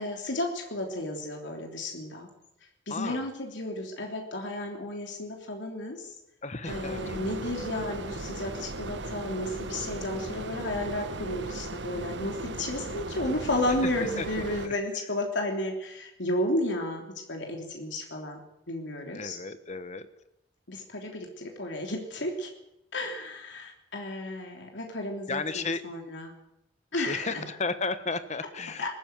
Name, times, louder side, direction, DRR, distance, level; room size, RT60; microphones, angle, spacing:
voice 1, 0.0-2.3 2.9-6.1 6.7-17.0 17.3-18.4 18.7-19.4 20.7-22.5 22.9-26.3 26.9-27.4 28.8-28.9, left 1 dB, 80° left, 2 dB, 3.3 m, -32 dB
voice 2, 2.9-3.3 6.4-7.2 13.8-13.9 14.2-14.7 19.1-20.1 25.3-25.8 26.9-28.9, left 4 dB, 40° left, 12 dB, 1.2 m, -34 dB
sound 1, 6.7-14.7, right 2 dB, 75° right, 1.4 m, -37 dB
20.5 x 15.0 x 9.4 m, 0.87 s
head